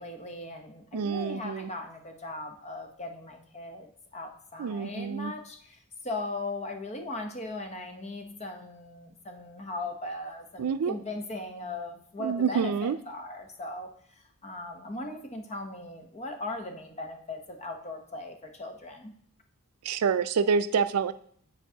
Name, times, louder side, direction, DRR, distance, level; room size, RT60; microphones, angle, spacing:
voice 1, 0.0-5.8 6.0-19.1, left 2 dB, 30° left, 4 dB, 0.8 m, -38 dB
voice 2, 0.9-1.7 4.6-5.3 10.6-10.9 12.2-13.0 19.8-21.1, right 6 dB, 85° right, 13 dB, 0.4 m, -27 dB
9.5 x 4.6 x 2.8 m, 0.62 s
head